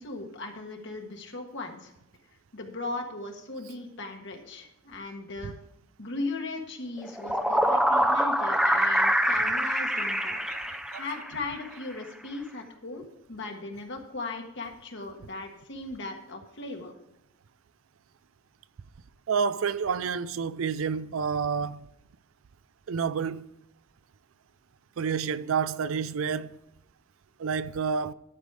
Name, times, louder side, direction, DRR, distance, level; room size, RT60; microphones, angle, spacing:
voice 1, 0.0-1.9 2.5-5.5 6.0-10.4 11.0-16.9, left 3 dB, 60° left, 1.5 m, -38 dB
sound 1, 7.0-11.4, equal, ahead, 0.6 m, -25 dB
voice 2, 10.5-11.0 19.3-21.9 22.9-23.5 25.0-26.6 27.4-28.1, right 6 dB, 75° right, 0.4 m, -29 dB
11.5 x 5.2 x 4.8 m
head